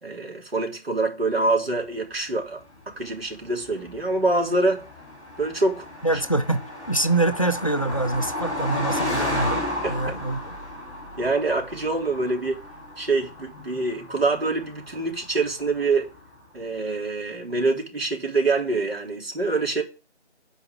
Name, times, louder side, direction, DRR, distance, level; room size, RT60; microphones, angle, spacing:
voice 1, 0.0-4.8 5.4-5.9 9.8-10.2 11.2-12.6 13.0-16.1 16.5-19.8, right 3 dB, 60° right, 3.7 m, -25 dB
Car passing by, 2.6-16.3, left 1 dB, 5° left, 2.5 m, -34 dB
voice 2, 6.0-9.6 9.9-10.5, right 2 dB, 30° left, 0.5 m, -25 dB
11.0 x 4.9 x 6.3 m
figure-of-eight pair, 160°, 34 cm